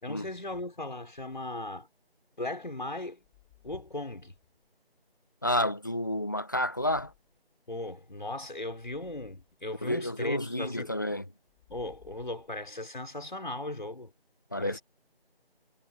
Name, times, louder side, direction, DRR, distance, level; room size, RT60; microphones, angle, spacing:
voice 1, 0.0-1.9 2.4-3.2 3.6-4.3 7.7-10.9 11.7-14.1 14.6-14.8, left 2 dB, 50° left, 5.7 m, -37 dB
sound 1, 3.2-4.7 6.7-7.4 8.8-9.6 11.4-12.8, left 20 dB, 5° left, 4.1 m, -62 dB
voice 2, 5.4-7.1 9.8-11.2 14.5-14.8, left 1 dB, 20° left, 1.7 m, -30 dB
figure-of-eight pair, 175°, 31 cm